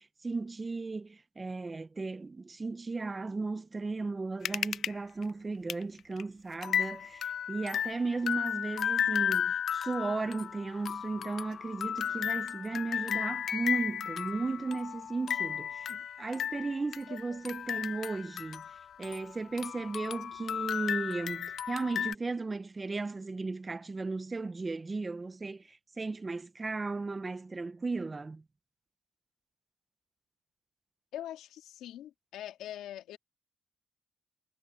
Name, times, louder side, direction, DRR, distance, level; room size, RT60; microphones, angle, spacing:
voice 1, 0.0-18.6 19.0-28.4, right 3 dB, 25° right, 1.1 m, -35 dB
sound 1, 4.5-4.9 5.2-5.3 5.7-5.8 6.2-6.3 6.6-19.3 19.6-22.2, left 8 dB, 60° left, 0.4 m, -34 dB
voice 2, 17.1-17.4 31.1-33.2, left 12 dB, 85° left, 2.3 m, -43 dB
cardioid pair, 90°, 0 cm